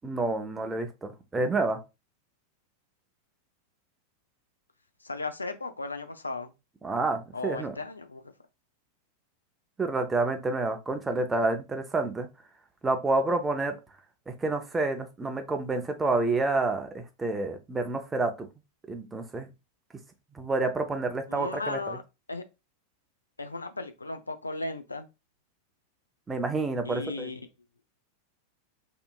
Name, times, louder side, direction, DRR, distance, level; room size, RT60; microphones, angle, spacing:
voice 1, 0.0-1.8 6.8-7.7 9.8-12.3 12.8-13.7 14.3-18.5 18.9-19.5 20.3-22.0 26.3-27.3, right 3 dB, 15° right, 0.5 m, -29 dB
voice 2, 5.0-6.5 7.3-8.3 21.3-22.0 22.3-22.4 23.4-25.1 26.8-27.4, left 3 dB, 80° left, 0.3 m, -36 dB
2.8 x 2.6 x 2.3 m
figure-of-eight pair, 90°, 0 cm